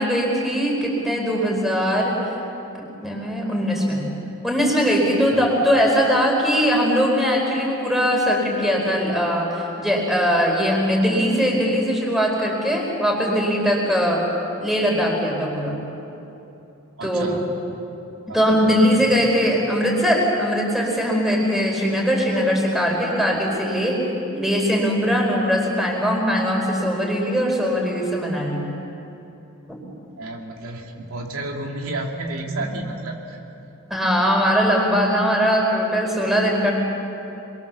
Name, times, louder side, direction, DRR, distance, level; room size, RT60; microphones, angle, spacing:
voice 1, 0.0-2.2 3.0-4.1 4.4-14.2 14.6-15.8 17.0-17.3 18.3-24.0 24.3-28.7 29.7-29.8 32.6-32.7 33.9-36.7, equal, ahead, -1 dB, 4.5 m, -20 dB
voice 2, 17.0-17.4 18.3-18.4 18.7-19.0 30.2-33.4, right 2 dB, 75° right, 0 dB, 2.7 m, -31 dB
28.0 x 23.0 x 7.1 m, 2.9 s
head